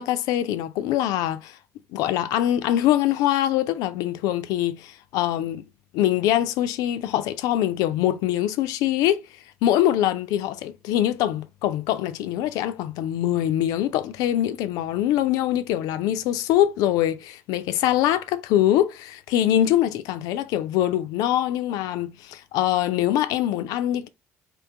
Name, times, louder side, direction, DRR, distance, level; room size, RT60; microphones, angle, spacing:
voice 1, 0.0-1.6 1.9-5.6 5.9-9.2 9.6-24.1, left 12 dB, 55° left, 0.4 m, -23 dB
3.7 x 2.7 x 3.3 m
figure-of-eight pair, 50°, 8 cm